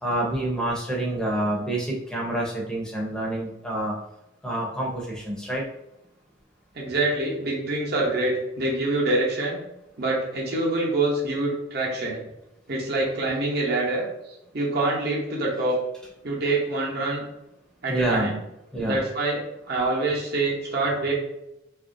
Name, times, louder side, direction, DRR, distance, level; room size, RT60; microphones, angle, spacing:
voice 1, 0.0-3.9 4.4-5.6 17.9-18.3 18.7-19.0, right 1 dB, 5° left, -4 dB, 0.6 m, -27 dB
voice 2, 6.8-9.6 10.0-12.2 12.7-14.0 14.5-15.8 16.2-17.2 17.8-18.4 18.8-21.1, right 2 dB, 50° right, -3 dB, 0.8 m, -25 dB
2.9 x 2.5 x 2.5 m, 0.86 s
head